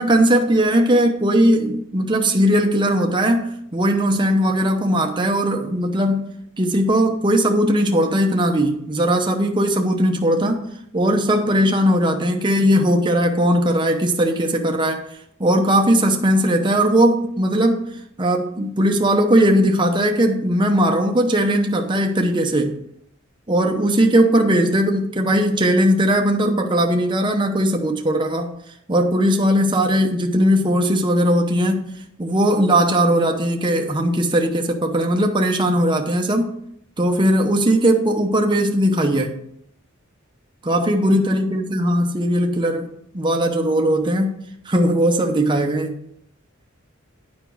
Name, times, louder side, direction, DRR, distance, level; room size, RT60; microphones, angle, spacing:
voice 1, 0.0-6.3 6.6-10.6 10.9-15.0 15.4-17.8 18.2-22.8 23.5-28.5 28.9-31.9 32.2-36.5 37.0-39.4 40.6-42.9 43.1-46.0, equal, 25° right, 2 dB, 0.8 m, -18 dB
9.2 x 5.2 x 4.6 m, 0.71 s
head